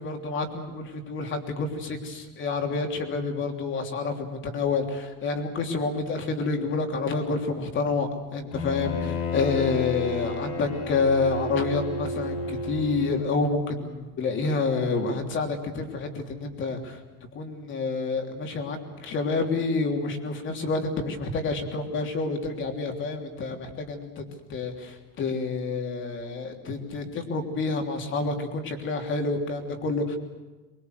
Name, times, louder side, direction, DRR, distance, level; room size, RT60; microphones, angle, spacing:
voice 1, 0.0-17.0 17.3-24.2 24.5-30.2, left 3 dB, 30° left, 4 dB, 3.2 m, -28 dB
Bowed string instrument, 8.5-13.4, left 2 dB, 75° left, 7.6 m, -32 dB
24.0 x 24.0 x 8.1 m, 1.2 s
cardioid pair, 170°, 42 cm